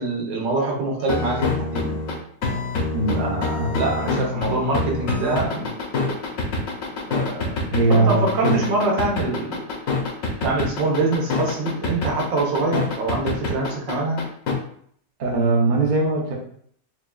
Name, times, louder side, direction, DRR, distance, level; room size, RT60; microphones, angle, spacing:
voice 1, 0.0-1.9 3.1-6.2 7.1-9.6 10.4-14.2, right 2 dB, 80° right, -2 dB, 1.7 m, -25 dB
sound 1, 1.0-14.5, left 3 dB, 60° left, 1.0 m, -25 dB
voice 2, 2.9-3.8 7.7-8.6 15.2-16.3, right 3 dB, 45° right, -1 dB, 0.6 m, -21 dB
5.9 x 2.5 x 2.3 m, 0.63 s
omnidirectional pair, 2.0 m